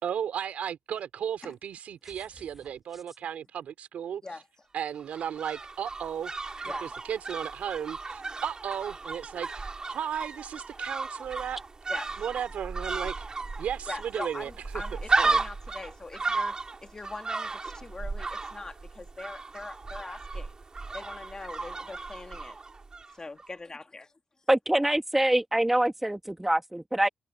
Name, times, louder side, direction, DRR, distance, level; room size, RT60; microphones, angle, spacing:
voice 1, 0.0-4.2 4.7-6.3 6.8-11.6 12.2-13.3 13.6-14.5 15.2-15.4, right 9 dB, 80° right, 3.2 m, -35 dB
sound 1, 5.0-23.1 23.4-23.5, right 3 dB, 35° right, 3.0 m, -34 dB
voice 2, 11.9-12.2 13.9-20.5 20.9-22.6 23.1-24.1, left 3 dB, 30° left, 2.4 m, -42 dB
voice 3, 24.5-27.1, right 1 dB, 10° right, 2.2 m, -25 dB
cardioid pair, 85°, 2 cm